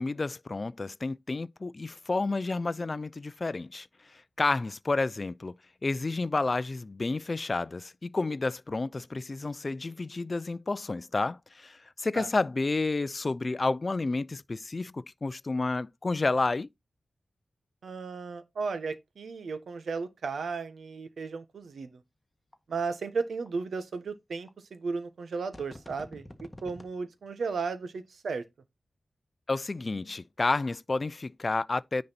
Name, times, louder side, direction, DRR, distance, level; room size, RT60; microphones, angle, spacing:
voice 1, 0.0-5.6 5.8-16.7 29.5-32.0, left 3 dB, 35° left, 0.5 m, -30 dB
voice 2, 17.8-22.0 22.7-28.4, right 4 dB, 80° right, 1.2 m, -35 dB
sound 1, 22.5-22.6 23.5-23.6 24.5-24.6 25.5-26.9 27.5-27.6, left 1 dB, 15° left, 1.6 m, -46 dB
9.9 x 4.1 x 4.2 m
wide cardioid pair, 100°, 0 cm